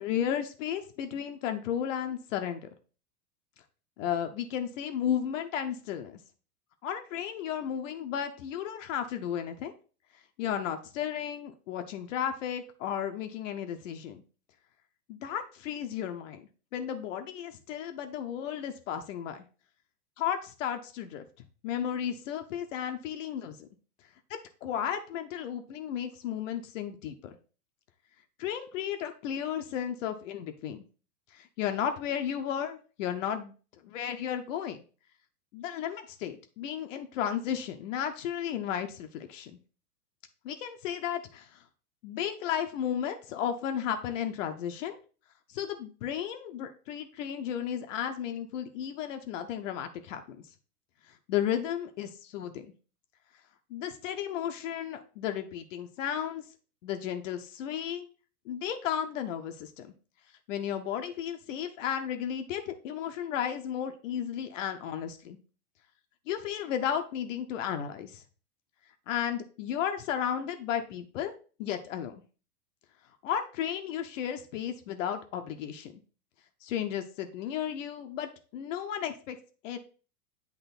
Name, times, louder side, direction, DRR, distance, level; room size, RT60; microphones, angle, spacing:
voice 1, 0.0-2.7 4.0-6.2 6.8-9.7 10.4-14.2 15.1-19.4 20.2-21.2 21.6-23.7 24.6-27.4 28.4-30.8 31.3-33.5 33.8-34.8 35.5-39.5 40.4-41.6 42.0-45.0 45.5-50.4 51.3-52.7 53.7-56.4 56.8-58.1 58.5-59.9 60.5-65.4 66.3-68.2 69.1-72.2 73.2-75.9 76.6-79.4 79.6-79.8, left 9 dB, 50° left, 7 dB, 0.8 m, -34 dB
8.2 x 3.0 x 4.1 m, 0.37 s
hypercardioid pair, 105°, 49 cm